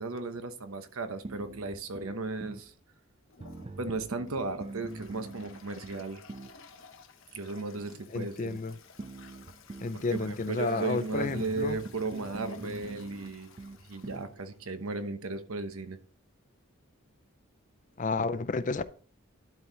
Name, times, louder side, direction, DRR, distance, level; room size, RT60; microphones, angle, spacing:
voice 1, 0.0-2.7 3.8-6.2 7.3-8.6 9.9-13.5 13.9-16.0, right 3 dB, 75° right, 0.9 m, -35 dB
sound 1, 1.2-2.7 3.4-6.6 9.0-10.4 11.1-14.3, right 2 dB, 25° right, 0.4 m, -44 dB
Toilet flush, 3.3-15.1, left 5 dB, 60° left, 1.0 m, -54 dB
voice 2, 8.1-8.7 9.8-11.8 18.0-18.8, left 3 dB, 35° left, 0.4 m, -31 dB
12.0 x 4.7 x 3.9 m
head